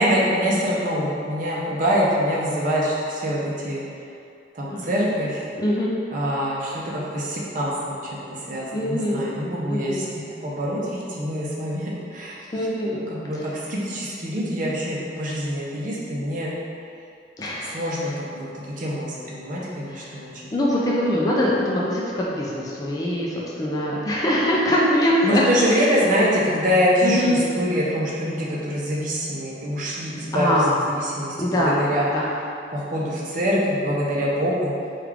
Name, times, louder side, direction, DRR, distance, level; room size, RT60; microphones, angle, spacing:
voice 1, 0.0-3.8 4.5-5.4 6.1-12.4 12.9-16.5 17.7-20.5 25.2-30.5 30.9-32.1 32.7-34.7, equal, 50° right, -5 dB, 0.6 m, -25 dB
voice 2, 5.6-6.0 8.7-9.4 9.7-10.1 12.5-13.1 13.3-13.5 17.4-17.9 19.9-20.1 20.5-25.4 25.7-26.0 27.0-27.5 30.3-30.8 31.4-31.8 32.1-32.3, left 1 dB, 20° left, -5 dB, 0.3 m, -23 dB
3.4 x 2.4 x 3.2 m, 2.4 s
head